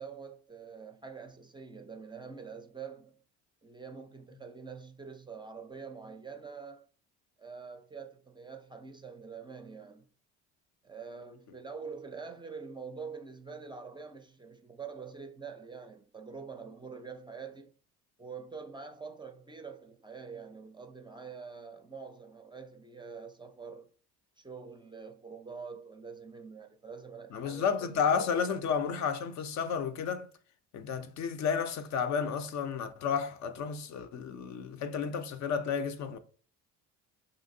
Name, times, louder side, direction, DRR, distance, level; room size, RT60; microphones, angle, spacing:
voice 1, 0.0-3.2 3.6-6.9 7.4-10.1 10.8-17.7 18.2-23.9 24.4-28.1, right 5 dB, 15° right, 0.4 m, -45 dB
voice 2, 27.3-30.3 30.7-36.2, left 6 dB, 55° left, 0.5 m, -32 dB
3.0 x 2.6 x 2.6 m
supercardioid pair, 75°, 35 cm